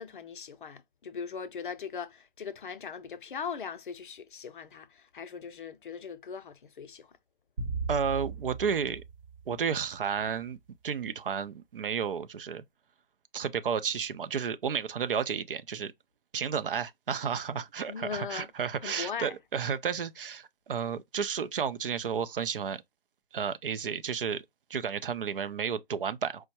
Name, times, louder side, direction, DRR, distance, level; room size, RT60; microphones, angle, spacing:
voice 1, 0.0-7.1 17.9-18.5 18.8-19.3, left 6 dB, 55° left, 0.5 m, -39 dB
sound 1, 7.6-10.1, right 4 dB, 35° right, 0.8 m, -37 dB
voice 2, 7.9-9.0 9.5-10.6 10.8-12.6 13.3-15.9 16.3-22.8 23.3-24.4 24.7-26.5, right 7 dB, 65° right, 0.5 m, -32 dB
4.6 x 2.1 x 2.7 m
figure-of-eight pair, 135°, 30 cm